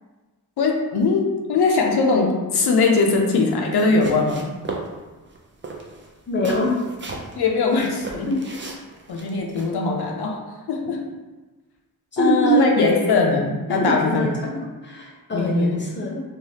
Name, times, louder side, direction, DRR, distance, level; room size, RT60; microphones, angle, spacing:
voice 1, 0.6-4.5 7.4-8.3 9.1-10.4 10.7-11.0 12.2-14.3 15.3-15.8, left 4 dB, 80° left, 1 dB, 0.5 m, -21 dB
sound 1, 3.7-4.9 5.3-5.4 5.6-7.4 7.7-9.7, right 3 dB, 30° right, 0.5 m, -34 dB
voice 2, 6.3-6.7 8.3-8.4 12.1-16.2, equal, 30° left, -2 dB, 0.7 m, -23 dB
3.3 x 2.2 x 2.7 m, 1.2 s
wide cardioid pair, 70°, 38 cm